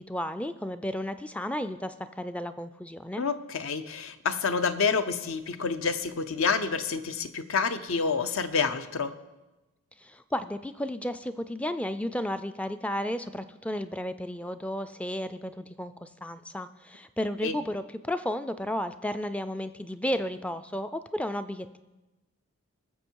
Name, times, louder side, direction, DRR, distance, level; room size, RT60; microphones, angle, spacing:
voice 1, 0.0-3.2 10.0-21.8, left 1 dB, 5° left, 10 dB, 0.3 m, -33 dB
voice 2, 3.2-9.1 17.4-17.5, left 5 dB, 70° left, 11 dB, 0.7 m, -28 dB
20.0 x 7.1 x 4.6 m, 1.1 s
head